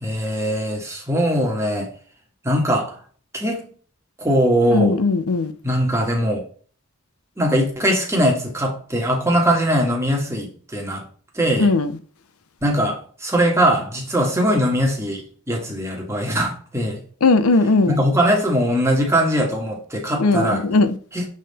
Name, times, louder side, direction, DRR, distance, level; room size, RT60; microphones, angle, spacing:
voice 1, 0.0-1.9 2.4-3.0 3.3-3.6 4.2-5.0 5.6-6.5 7.4-11.0 11.3-11.7 12.6-17.0 17.9-20.6 21.1-21.2, equal, 15° right, 1.5 m, -21 dB
voice 2, 4.7-5.5 11.6-11.9 17.2-18.0 20.2-20.9, left 3 dB, 85° left, 0.6 m, -18 dB
7.4 x 3.7 x 4.1 m
head